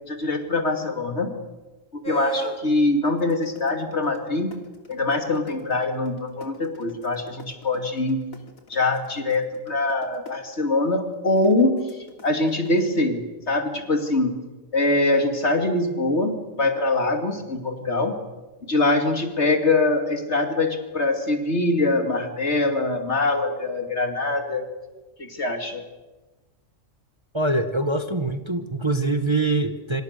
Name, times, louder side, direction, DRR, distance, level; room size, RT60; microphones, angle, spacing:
voice 1, 0.1-1.3 1.9-4.6 4.9-8.2 8.7-14.4 14.7-18.2 18.6-24.6 25.2-25.8, left 2 dB, 55° left, 5 dB, 2.9 m, -23 dB
sound 1, 2.0-2.6 3.0-10.3 11.4-12.8, right 3 dB, 90° left, 3.3 m, -36 dB
voice 2, 27.3-30.0, right 2 dB, 20° right, 7 dB, 1.3 m, -24 dB
27.0 x 26.0 x 6.7 m, 1.2 s
omnidirectional pair, 1.4 m